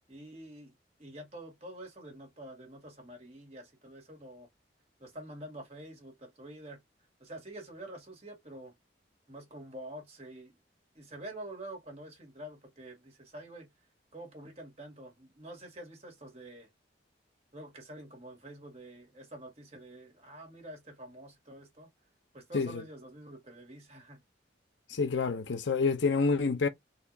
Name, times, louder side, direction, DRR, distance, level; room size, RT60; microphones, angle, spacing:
voice 1, 0.1-4.5 5.0-6.8 7.2-8.7 9.3-10.5 11.0-13.7 14.1-16.7 17.5-21.9 22.3-24.2, right 1 dB, 35° right, 1.9 m, -47 dB
voice 2, 24.9-26.7, left 4 dB, 85° left, 0.6 m, -28 dB
4.1 x 2.7 x 2.6 m
head